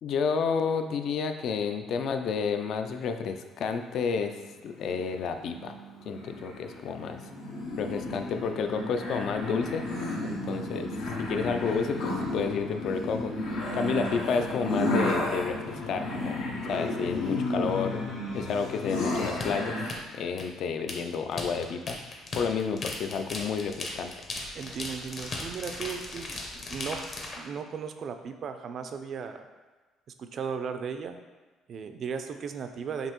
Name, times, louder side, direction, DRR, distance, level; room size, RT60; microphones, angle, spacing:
voice 1, 0.0-4.3 4.6-5.7 6.1-7.2 7.8-9.8 10.2-10.9 11.2-13.3 13.7-18.0 18.3-22.0 22.3-24.1, left 5 dB, 60° left, 7 dB, 0.3 m, -30 dB
sound 1, 4.3-19.9, left 1 dB, 90° left, 0.8 m, -33 dB
sound 2, 19.4-27.4, left 2 dB, 45° left, 0.7 m, -37 dB
voice 2, 24.5-27.0 27.4-29.5 30.2-31.2 31.7-33.1, right 6 dB, 50° right, 8 dB, 0.3 m, -36 dB
5.2 x 2.7 x 3.0 m, 1.2 s
cardioid pair, 100°, 0 cm